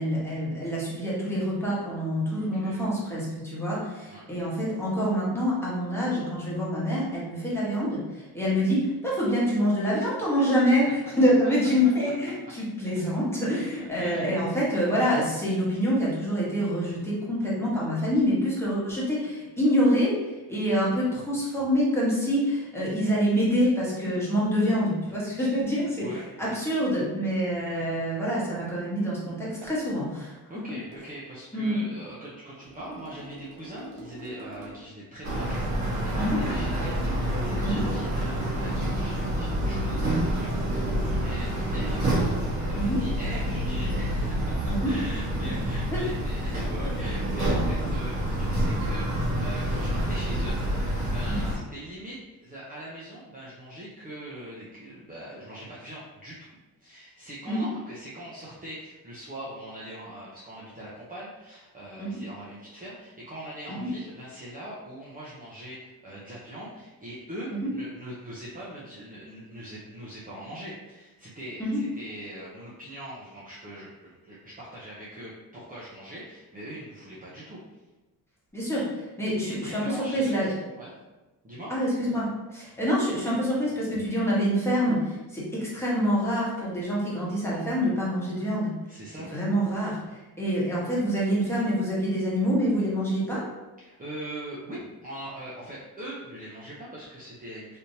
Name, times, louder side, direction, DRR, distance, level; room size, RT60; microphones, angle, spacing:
voice 1, 0.0-20.1 20.5-30.4 31.5-31.8 36.2-36.4 37.6-37.8 42.8-43.0 44.7-44.9 45.9-46.0 51.3-51.4 57.5-57.6 62.0-62.2 63.7-63.9 67.6-67.7 71.6-71.8 78.5-80.5 81.7-88.7 89.3-93.4, equal, 5° left, -7 dB, 1.2 m, -26 dB
voice 2, 2.3-2.9 4.1-4.2 10.4-10.5 14.0-14.3 26.0-26.6 30.5-56.5 56.8-77.6 79.4-80.9 81.4-81.7 88.9-89.3 93.8-97.8, right 1 dB, 20° right, -7 dB, 0.7 m, -41 dB
sound 1, 29.6-29.9 30.9-31.1 32.6-35.0 37.0-39.1 40.9-41.2, right 1 dB, 80° right, 1.0 m, -45 dB
sound 2, 35.2-51.5, equal, 45° right, 1.4 m, -28 dB
3.4 x 2.8 x 2.7 m, 1.1 s
cardioid pair, 110°, 39 cm